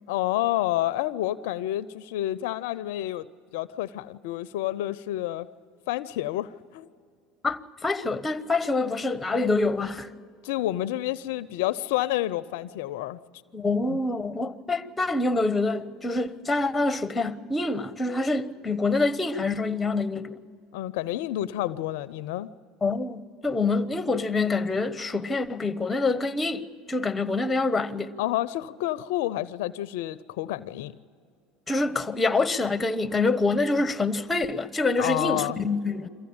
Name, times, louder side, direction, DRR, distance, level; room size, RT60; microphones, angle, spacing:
voice 1, 0.1-3.3 3.5-5.5 5.9-6.9 10.4-13.2 13.9-14.0 20.7-22.5 28.2-30.9 35.0-35.6, left 14 dB, 75° left, 0.5 m, -29 dB
voice 2, 7.4-10.1 13.5-20.3 22.8-28.1 31.7-36.1, left 3 dB, 15° left, 1.0 m, -26 dB
23.0 x 15.0 x 8.7 m
hypercardioid pair, 90°, 0 cm